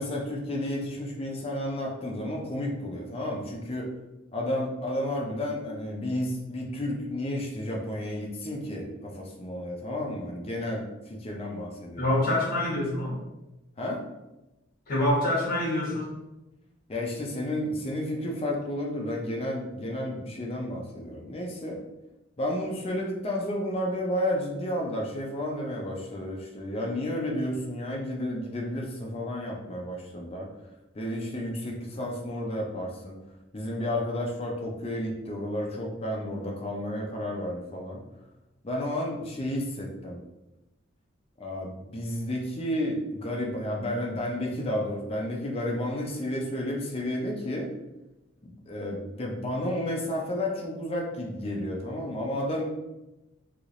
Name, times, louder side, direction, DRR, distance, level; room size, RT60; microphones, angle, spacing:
voice 1, 0.0-3.9 4.3-12.3 13.8-14.0 16.9-21.8 22.4-30.5 30.9-33.1 33.5-38.0 38.6-40.2 41.4-47.7 48.4-52.6, left 1 dB, 30° left, -1 dB, 0.5 m, -32 dB
voice 2, 12.0-13.2 14.9-16.1, left 1 dB, 45° left, -4 dB, 1.1 m, -26 dB
3.3 x 2.8 x 2.5 m, 0.98 s
head